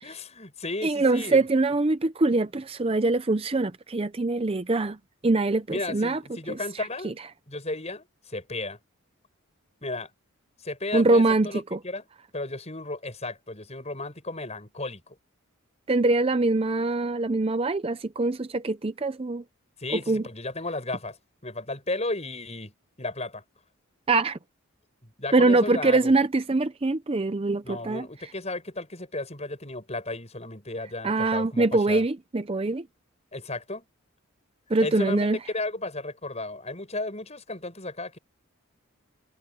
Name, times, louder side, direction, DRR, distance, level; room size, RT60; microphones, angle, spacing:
voice 1, 0.0-1.4 5.7-7.2 7.5-8.8 9.8-10.1 10.6-12.1 12.3-15.2 19.8-22.7 23.0-23.4 25.0-26.1 27.6-32.1 33.3-33.8 34.8-38.2, left 2 dB, 30° left, 7.9 m, -34 dB
voice 2, 0.8-5.0 5.2-6.2 6.5-6.6 7.0-7.1 10.9-11.8 15.9-19.4 20.1-20.2 24.1-24.4 25.3-28.1 31.0-32.8 34.7-35.4, right 2 dB, 25° right, 0.5 m, -23 dB
head